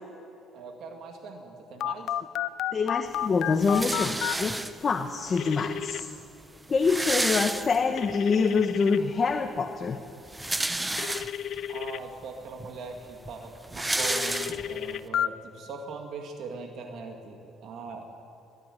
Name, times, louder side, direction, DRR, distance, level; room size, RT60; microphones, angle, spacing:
voice 1, 0.5-2.2 6.9-7.0 11.7-18.1, right 4 dB, 65° right, 3 dB, 2.3 m, -41 dB
Telephone, 1.8-4.4 5.4-6.0 8.0-9.0 11.0-12.0 14.0-15.3, left 11 dB, 70° left, 0.6 m, -31 dB
voice 2, 2.7-6.1 6.7-10.0, left 5 dB, 35° left, 6 dB, 1.1 m, -26 dB
sound 1, 3.6-5.0 5.9-6.0 6.2-6.3 6.5-8.1 8.6-8.7 10.1-11.6 12.2-12.3 12.6-14.9, right 2 dB, 10° right, 0.8 m, -31 dB
22.5 x 12.0 x 9.8 m, 2.7 s
cardioid pair, 105°, 0 cm